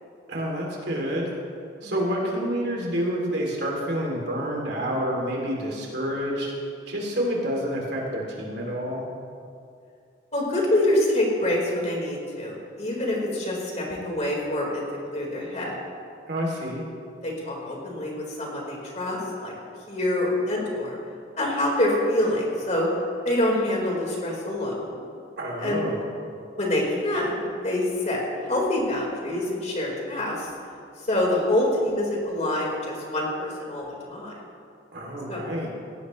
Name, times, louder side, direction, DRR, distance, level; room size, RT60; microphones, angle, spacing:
voice 1, 0.3-1.3 1.8-6.5 6.9-9.1 16.3-16.8 25.4-26.0 34.9-35.7, equal, 65° right, -2 dB, 2.9 m, -28 dB
voice 2, 10.3-14.8 15.1-15.8 17.2-19.5 19.9-21.0 21.4-22.9 23.2-25.0 25.6-25.8 26.6-30.5 31.0-34.4 35.3-35.4, left 1 dB, 40° left, -3 dB, 4.3 m, -26 dB
18.5 x 17.5 x 3.2 m, 2.4 s
head